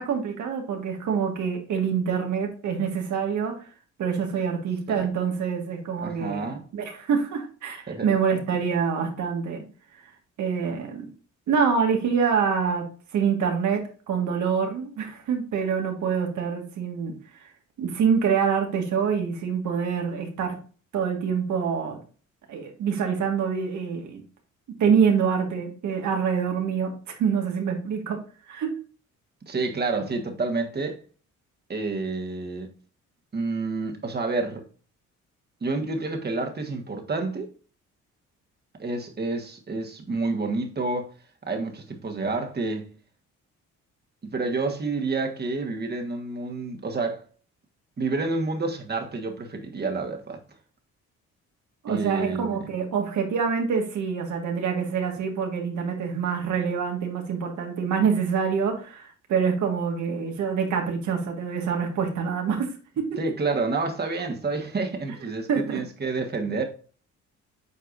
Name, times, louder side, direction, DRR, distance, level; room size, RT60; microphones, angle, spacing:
voice 1, 0.0-3.6 4.0-9.6 10.4-11.1 11.5-12.9 13.1-17.5 17.8-20.6 20.9-22.0 22.5-24.2 24.8-28.2 28.5-28.7 51.8-63.1 65.5-65.8, right 6 dB, 70° right, 1.8 m, -26 dB
voice 2, 6.0-6.6 7.9-8.1 29.5-31.0 31.7-32.7 33.3-34.6 35.6-37.5 38.8-41.1 41.4-42.9 44.2-47.2 48.0-50.4 51.9-52.6 63.2-66.6, right 3 dB, 35° right, 1.5 m, -29 dB
8.1 x 4.5 x 2.6 m
cardioid pair, 90°, 30 cm